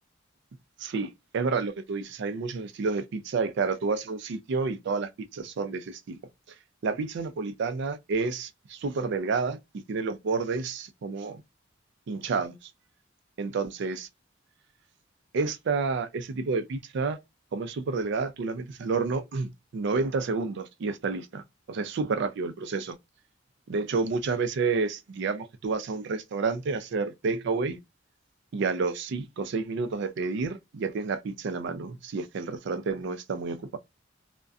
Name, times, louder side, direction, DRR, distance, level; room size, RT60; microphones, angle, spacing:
voice 1, 0.8-6.2 6.8-11.4 12.1-12.7 13.4-14.1 15.3-17.2 17.5-23.0 23.7-27.8 28.5-33.8, right 4 dB, 65° right, 0.4 m, -30 dB
2.3 x 2.1 x 2.5 m
head